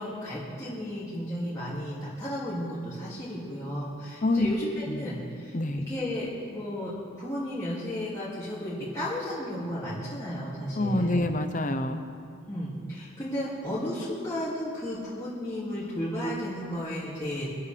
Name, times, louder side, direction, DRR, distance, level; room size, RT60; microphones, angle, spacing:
voice 1, 0.0-5.6 5.9-6.9 7.2-11.2 12.5-17.5, equal, 15° left, -10 dB, 2.6 m, -33 dB
voice 2, 4.2-4.5 4.9-5.0 5.5-5.9 10.7-12.0, left 2 dB, 35° left, 7 dB, 0.9 m, -26 dB
24.5 x 12.0 x 3.5 m, 2.2 s
head